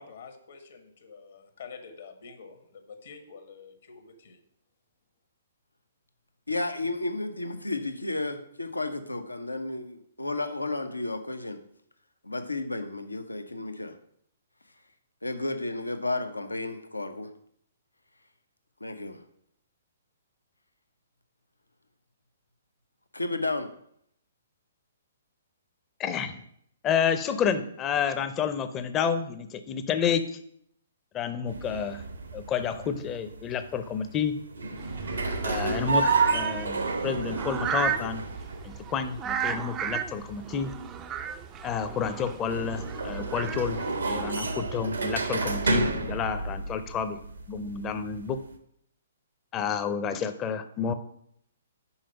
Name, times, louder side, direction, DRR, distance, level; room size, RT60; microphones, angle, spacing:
voice 1, 0.0-4.4, left 5 dB, 60° left, 6 dB, 1.2 m, -47 dB
voice 2, 6.5-11.6 12.2-14.0 15.2-17.3 18.8-19.2 23.1-23.7, left 2 dB, 90° left, 8 dB, 0.7 m, -32 dB
voice 3, 26.0-26.4 26.8-30.2 31.1-32.0 32.3-34.3 35.4-38.2 38.6-40.7 41.6-47.2 47.5-48.4 49.5-50.9, left 7 dB, 20° left, 10 dB, 0.6 m, -30 dB
sound 1, 31.5-48.5, right 3 dB, 80° right, 1.0 m, -31 dB
sound 2, 34.8-44.3, right 8 dB, 20° right, 0.4 m, -35 dB
5.6 x 4.9 x 5.8 m, 0.70 s
figure-of-eight pair, 125°, 0 cm